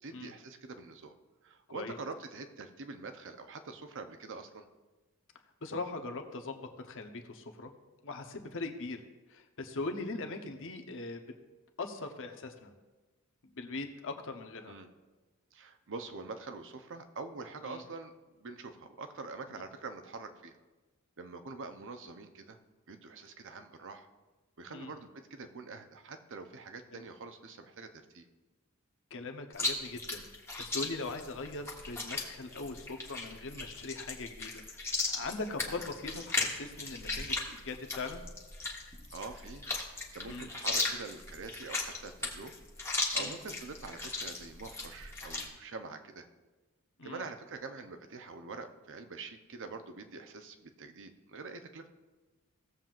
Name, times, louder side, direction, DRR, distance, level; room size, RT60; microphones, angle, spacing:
voice 1, 0.0-1.1 1.4-4.7 14.7-14.9 15.5-20.6 21.2-22.6 22.9-24.1 24.6-28.3 39.1-39.7 40.1-42.6 43.1-46.3 47.0-51.9, right 4 dB, 60° right, 7 dB, 0.8 m, -45 dB
voice 2, 5.6-7.7 8.0-9.0 9.3-11.2 11.8-12.7 13.6-14.7 17.7-17.8 24.7-24.9 26.9-27.0 29.1-30.2 30.6-34.6 35.1-38.2 40.3-40.5 43.1-43.4 47.0-47.2, left 3 dB, 60° left, 5 dB, 0.9 m, -40 dB
Chewing mastication, 29.5-45.5, left 3 dB, 10° left, 1.2 m, -37 dB
17.0 x 7.5 x 2.5 m, 1.2 s
head